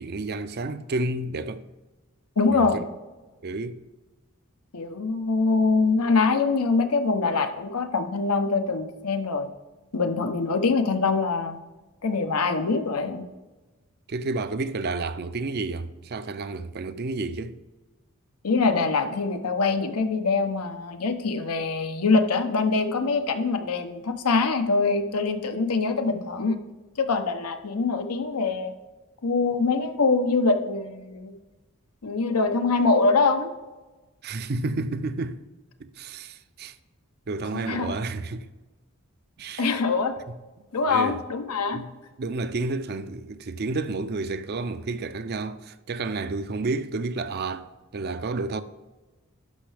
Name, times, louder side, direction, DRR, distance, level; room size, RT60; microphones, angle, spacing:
voice 1, 0.0-1.6 2.5-2.8 3.4-3.8 14.1-17.6 34.2-35.4 35.8-36.8 37.3-38.5 39.4-39.7 40.9-41.2 41.7-41.9 42.2-48.6, right 3 dB, 45° right, 0.5 m, -30 dB
voice 2, 2.4-2.8 4.7-9.5 9.9-11.6 12.0-13.2 18.4-26.6 27.0-28.7 29.2-31.3 32.0-33.5 37.7-37.9 39.6-40.1 40.7-41.8, left 4 dB, 90° left, 0.8 m, -24 dB
11.5 x 5.6 x 3.4 m
head